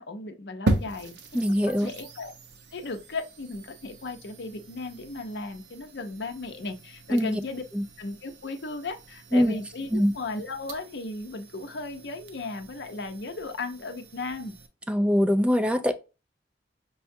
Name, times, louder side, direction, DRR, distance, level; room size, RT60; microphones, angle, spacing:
voice 1, 0.0-1.2 1.7-2.3 2.7-7.6 8.0-14.6, left 3 dB, 65° left, 0.6 m, -36 dB
sound 1, 0.7-14.7, right 2 dB, 65° right, 0.7 m, -38 dB
voice 2, 1.3-1.9 7.1-7.4 9.3-9.5 9.9-10.1 14.9-15.9, equal, 5° right, 0.4 m, -22 dB
5.4 x 2.3 x 2.6 m
head